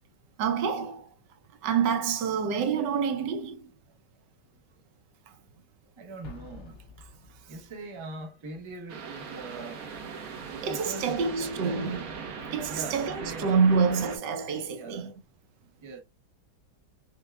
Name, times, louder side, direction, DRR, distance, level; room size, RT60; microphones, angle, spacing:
voice 1, 0.4-1.1 1.6-3.6 10.6-12.0 12.5-13.1 13.4-15.1, right 6 dB, 80° right, 1.3 m, -27 dB
voice 2, 6.0-6.8 7.2-9.9 10.4-11.9 12.7-14.1 14.7-15.2 15.8-16.0, right 3 dB, 30° right, 0.5 m, -42 dB
Explosion, 6.2-7.9, left 3 dB, 50° left, 0.7 m, -48 dB
sound 1, 8.9-14.2, right 5 dB, 60° right, 1.3 m, -39 dB
6.4 x 2.2 x 2.2 m
omnidirectional pair, 1.9 m